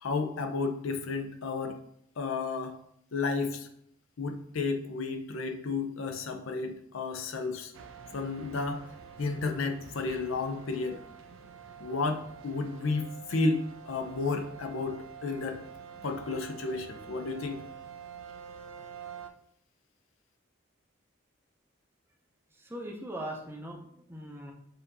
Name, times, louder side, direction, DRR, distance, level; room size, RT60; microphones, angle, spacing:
voice 1, 0.0-1.8 2.2-2.8 3.1-3.7 4.2-7.7 8.1-8.9 9.2-11.0 11.8-15.6 16.0-17.6, left 3 dB, 80° left, 6 dB, 0.5 m, -32 dB
sound 1, 7.7-19.3, right 7 dB, 75° right, 0.5 m, -47 dB
voice 2, 22.5-24.5, right 1 dB, 10° right, 0 dB, 0.6 m, -40 dB
6.6 x 2.7 x 2.6 m, 0.71 s
head